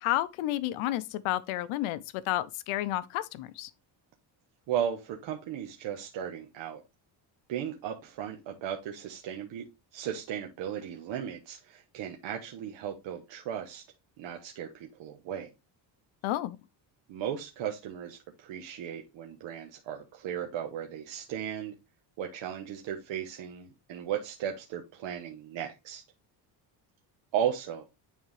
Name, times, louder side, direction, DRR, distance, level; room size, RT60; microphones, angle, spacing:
voice 1, 0.0-3.7 16.2-16.6, left 14 dB, 90° left, 0.7 m, -31 dB
voice 2, 4.7-6.8 7.5-9.6 9.9-13.8 14.2-15.5 17.1-21.7 22.2-26.0 27.3-27.8, right 9 dB, 65° right, 1.1 m, -36 dB
9.4 x 3.6 x 3.2 m
cardioid pair, 160°, 47 cm